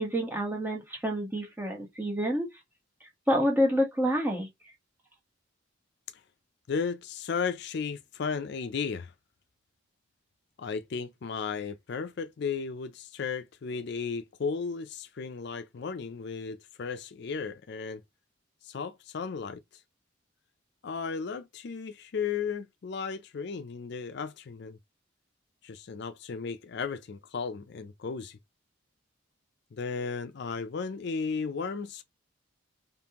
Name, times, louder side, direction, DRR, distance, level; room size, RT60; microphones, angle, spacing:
voice 1, 0.0-2.5 3.3-4.5, equal, 10° right, 1.2 m, -28 dB
voice 2, 6.7-9.1 10.6-18.0 18.6-19.8 20.8-24.8 25.6-28.4 29.7-32.0, left 5 dB, 50° left, 0.4 m, -35 dB
5.3 x 2.4 x 2.9 m
head